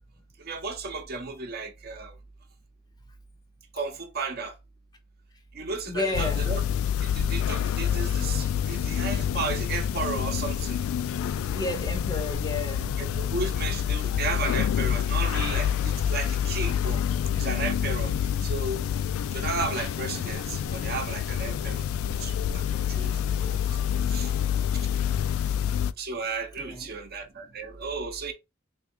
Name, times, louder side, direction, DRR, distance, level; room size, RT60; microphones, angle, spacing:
voice 1, 0.4-2.1 3.7-4.5 5.5-6.6 7.0-10.8 13.0-17.0 17.4-18.1 18.4-18.8 19.3-21.9 22.2-23.1 23.4-23.6 24.1-24.3 24.7-24.9 26.0-28.3, right 4 dB, 50° right, 0.7 m, -34 dB
voice 2, 5.9-6.5 11.5-13.0 23.2-23.5 26.6-27.0, left 2 dB, 20° left, 0.5 m, -32 dB
sound 1, 6.1-25.9, left 9 dB, 90° left, 0.3 m, -27 dB
3.5 x 2.3 x 4.2 m
head